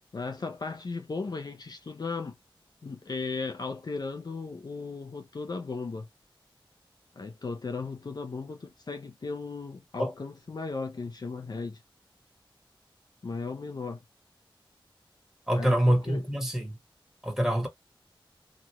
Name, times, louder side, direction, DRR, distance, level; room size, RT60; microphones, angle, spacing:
voice 1, 0.1-2.3 2.8-6.1 7.2-11.8 13.2-14.0 15.5-16.3, left 4 dB, 50° left, 0.5 m, -36 dB
voice 2, 15.5-16.8 17.2-17.7, equal, 5° right, 1.4 m, -25 dB
2.9 x 2.4 x 3.0 m
wide cardioid pair, 65°, 9 cm